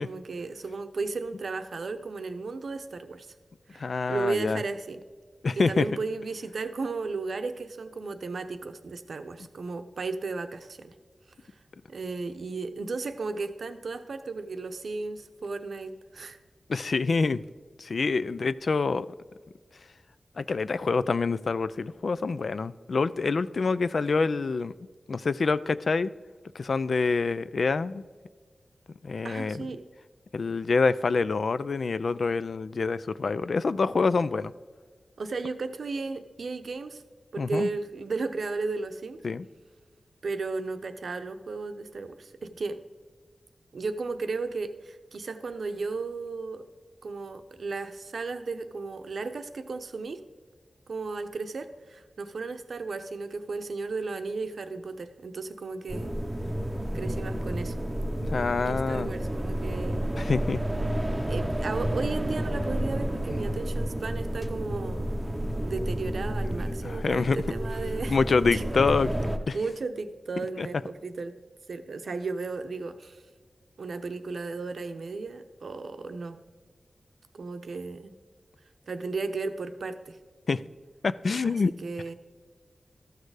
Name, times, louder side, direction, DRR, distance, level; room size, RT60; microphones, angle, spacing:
voice 1, 0.0-3.3 3.7-5.0 5.6-10.9 11.9-16.4 29.2-29.8 35.2-37.0 37.3-39.2 40.2-42.8 43.7-46.7 47.0-50.2 50.9-56.1 56.9-57.8 58.6-60.0 61.3-65.3 65.6-68.2 68.5-68.6 69.5-71.4 71.7-73.2 73.8-76.4 77.3-78.1 78.9-80.2 81.4-82.1, right 3 dB, 80° right, 9 dB, 0.7 m, -34 dB
voice 2, 3.8-4.6 5.4-5.9 16.7-17.4 17.8-19.1 20.4-24.7 25.1-26.1 26.6-28.0 29.0-29.6 30.3-34.5 37.4-37.7 39.2-39.5 58.2-59.1 60.2-60.6 66.8-67.4 68.1-69.1 69.5-69.6 70.6-70.7 80.5-80.6 81.0-81.7, left 4 dB, 70° left, 16 dB, 0.3 m, -26 dB
sound 1, 55.9-69.4, right 1 dB, 15° right, 0.7 m, -31 dB
13.5 x 6.5 x 4.8 m, 1.5 s
wide cardioid pair, 105°, 0 cm